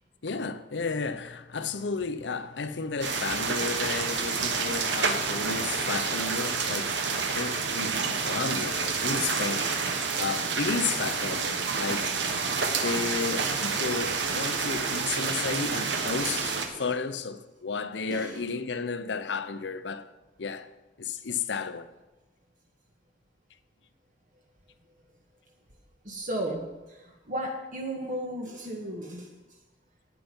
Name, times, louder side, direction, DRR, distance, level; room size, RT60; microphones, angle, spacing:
voice 1, 0.2-7.0 7.3-12.5 12.8-20.1 20.4-20.7 21.0-21.9, left 4 dB, 65° left, 0.7 m, -33 dB
sound 1, 3.0-16.7, right 5 dB, 70° right, 1.2 m, -29 dB
voice 2, 26.0-26.6 26.9-27.0 27.3-29.3, right 1 dB, 45° right, 1.6 m, -34 dB
11.5 x 9.4 x 5.3 m
head